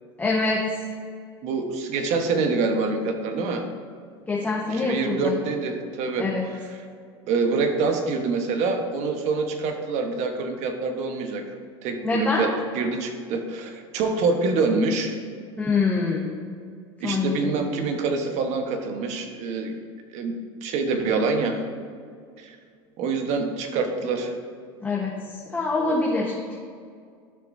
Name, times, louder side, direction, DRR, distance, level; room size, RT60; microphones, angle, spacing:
voice 1, 0.2-0.6 4.3-5.4 6.2-6.4 12.0-12.4 15.6-16.3 17.0-17.5 24.8-26.6, left 3 dB, 10° left, -4 dB, 1.2 m, -25 dB
voice 2, 1.4-3.6 4.7-6.6 7.3-11.4 11.8-15.2 17.0-19.7 20.1-20.3 20.6-21.6 22.4-22.6 23.0-24.3, right 4 dB, 55° right, 5 dB, 1.2 m, -26 dB
12.0 x 6.2 x 2.7 m, 2.2 s
supercardioid pair, 105°, 14 cm